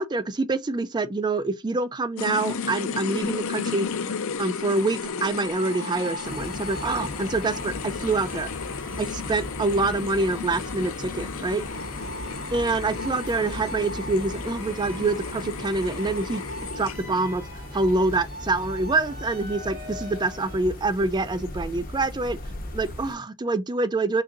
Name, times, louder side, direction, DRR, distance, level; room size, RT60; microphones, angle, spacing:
voice 1, 0.0-3.9 4.4-8.5 9.0-11.6 12.5-16.4 16.8-17.4 17.7-22.4 22.7-24.2, right 3 dB, 20° right, 0.4 m, -26 dB
sound 1, 2.2-17.3, left 5 dB, 70° left, 0.5 m, -34 dB
sound 2, 4.6-20.6, right 2 dB, 45° right, 2.5 m, -42 dB
sound 3, 6.2-23.2, left 1 dB, 45° left, 1.1 m, -38 dB
3.9 x 2.6 x 3.7 m
head